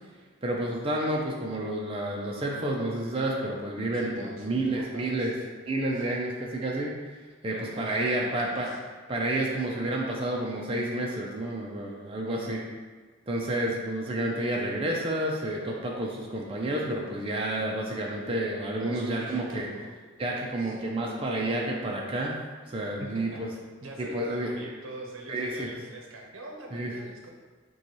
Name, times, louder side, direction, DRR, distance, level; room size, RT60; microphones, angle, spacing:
voice 1, 0.4-5.3 5.6-6.9 7.4-8.7 9.1-12.6 13.3-19.7 20.2-22.4 22.7-23.5 24.0-24.5 25.3-25.7 26.7-26.9, right 1 dB, 25° right, -2 dB, 0.4 m, -30 dB
voice 2, 3.9-5.3 5.9-6.3 7.5-8.8 12.2-12.5 18.8-19.9 20.6-20.8 23.0-23.4 23.8-27.3, right 1 dB, 85° right, 0 dB, 0.7 m, -43 dB
6.4 x 2.3 x 3.0 m, 1.4 s
head